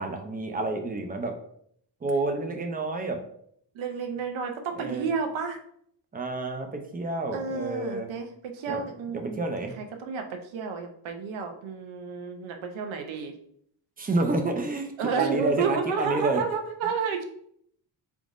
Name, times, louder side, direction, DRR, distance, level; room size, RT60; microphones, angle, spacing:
voice 1, 0.0-1.4 2.0-3.2 4.7-5.1 6.1-8.1 8.7-8.8 9.1-9.7 14.0-16.4, right 2 dB, 20° right, 4 dB, 0.3 m, -29 dB
voice 2, 3.7-5.6 7.3-8.3 8.5-9.4 9.8-13.3 15.0-17.2, right 5 dB, 85° right, 5 dB, 0.8 m, -31 dB
3.9 x 3.6 x 2.5 m, 0.67 s
cardioid pair, 150°, 46 cm